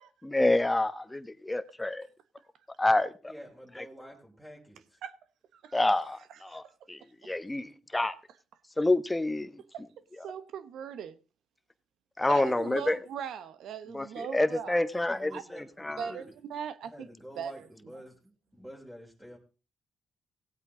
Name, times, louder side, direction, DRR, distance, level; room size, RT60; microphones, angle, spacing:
voice 1, 0.2-2.1 2.8-3.1 5.7-6.6 6.9-8.1 8.8-9.6 12.2-13.0 13.9-15.3 15.8-16.0, left 2 dB, 15° left, 1.0 m, -27 dB
voice 2, 3.3-5.0 15.1-16.2 16.9-19.4, equal, 5° right, 3.8 m, -48 dB
voice 3, 6.3-6.7 9.7-9.9 10.2-11.2 12.3-14.8 15.3-15.4 16.0-17.1 17.4-17.7 17.9-18.0, right 8 dB, 75° right, 1.1 m, -40 dB
18.0 x 8.3 x 3.8 m
cardioid pair, 75°, 0 cm